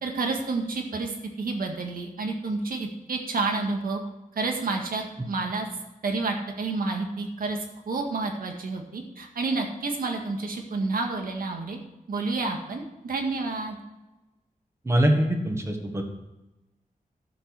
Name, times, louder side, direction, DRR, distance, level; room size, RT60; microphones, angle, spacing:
voice 1, 0.0-4.0 4.4-5.7 6.0-7.6 7.9-11.8 12.1-13.8, right 3 dB, 85° right, 3 dB, 1.9 m, -29 dB
voice 2, 14.9-16.0, equal, 20° right, 3 dB, 1.6 m, -23 dB
11.5 x 7.8 x 4.8 m, 1.0 s
wide cardioid pair, 155°, 15 cm